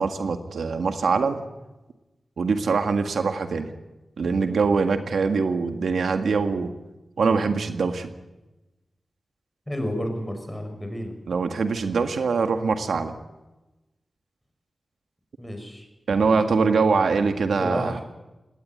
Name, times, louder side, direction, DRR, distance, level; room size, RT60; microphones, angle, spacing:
voice 1, 0.0-1.4 2.4-3.7 4.2-6.7 7.2-8.1 11.3-13.1 16.1-18.0, right 4 dB, 90° right, 7 dB, 1.8 m, -23 dB
voice 2, 9.7-11.1 15.4-15.8 17.6-18.0, equal, 10° left, 5 dB, 5.9 m, -30 dB
19.5 x 18.0 x 9.2 m, 1.0 s
wide cardioid pair, 75°, 0 cm